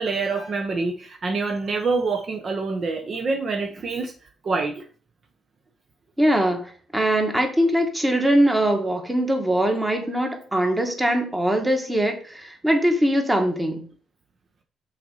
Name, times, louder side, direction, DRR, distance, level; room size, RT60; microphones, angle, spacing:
voice 1, 0.0-4.1 4.4-4.9, right 3 dB, 50° right, 4 dB, 0.8 m, -26 dB
voice 2, 6.2-13.8, right 1 dB, 10° right, 4 dB, 1.6 m, -22 dB
5.8 x 4.2 x 5.4 m, 0.43 s
cardioid pair, 90°, 0 cm